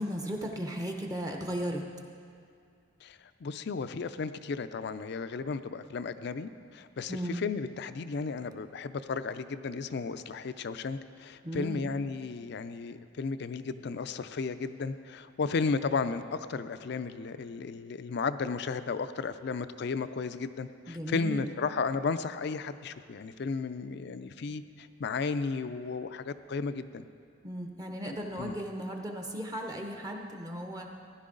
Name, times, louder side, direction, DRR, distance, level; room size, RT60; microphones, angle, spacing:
voice 1, 0.0-1.8 7.1-7.4 11.4-11.9 20.9-21.5 27.4-30.9, equal, 20° right, 2 dB, 0.7 m, -36 dB
voice 2, 3.0-27.0 28.4-28.5, left 4 dB, 60° left, 12 dB, 0.4 m, -34 dB
15.5 x 10.5 x 3.8 m, 2.3 s
head